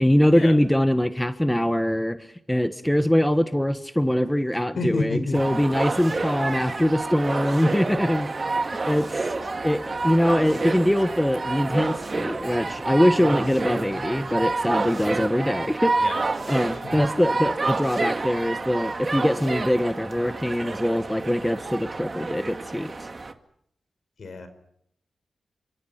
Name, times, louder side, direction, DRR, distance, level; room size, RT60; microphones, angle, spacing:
voice 1, 0.0-9.3 9.6-15.9 16.5-23.1, equal, 5° left, 10 dB, 1.3 m, -23 dB
voice 2, 4.8-5.6 16.0-17.0 24.2-24.5, left 3 dB, 65° left, 9 dB, 5.2 m, -31 dB
sound 1, 5.3-23.3, right 3 dB, 35° right, 2.1 m, -29 dB
29.0 x 25.5 x 5.8 m, 0.73 s
wide cardioid pair, 95°, 0 cm